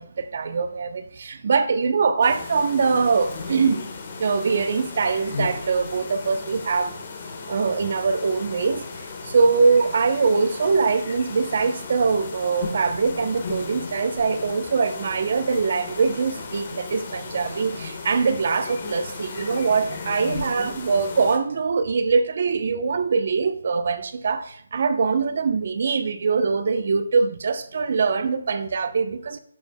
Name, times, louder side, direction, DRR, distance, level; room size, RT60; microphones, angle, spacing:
voice 1, 0.0-3.9 4.2-6.9 7.5-29.4, right 4 dB, 50° right, 0.7 m, -23 dB
sound 1, 2.2-21.4, left 4 dB, 40° left, 1.2 m, -36 dB
12.0 x 4.5 x 2.2 m
figure-of-eight pair, 155°, 0 cm